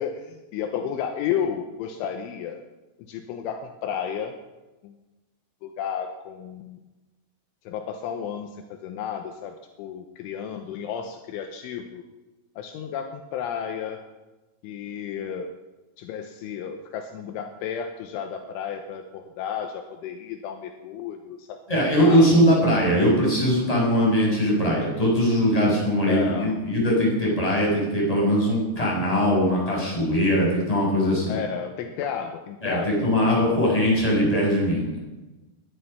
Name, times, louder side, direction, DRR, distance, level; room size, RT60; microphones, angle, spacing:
voice 1, 0.0-2.6 3.1-4.4 4.8-4.9 5.6-6.8 7.7-12.0 12.6-14.0 14.6-15.5 16.0-22.5 26.1-26.6 31.3-33.5, left 8 dB, 80° left, 5 dB, 3.3 m, -32 dB
voice 2, 21.7-31.4 32.6-35.0, equal, 5° left, -4 dB, 6.4 m, -21 dB
21.5 x 11.0 x 5.7 m, 1.1 s
omnidirectional pair, 5.8 m